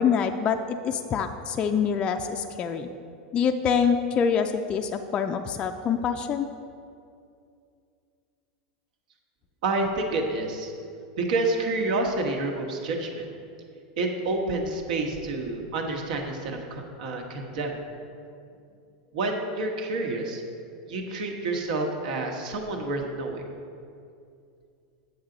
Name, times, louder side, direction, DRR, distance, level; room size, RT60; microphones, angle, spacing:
voice 1, 0.0-2.9 3.3-6.5, left 6 dB, 25° left, 5 dB, 0.3 m, -25 dB
voice 2, 9.6-10.7 11.2-13.3 14.0-17.8 19.1-20.4 20.9-23.4, right 2 dB, 70° right, 2 dB, 1.3 m, -28 dB
8.6 x 7.2 x 3.9 m, 2.4 s
supercardioid pair, 155°, 4 cm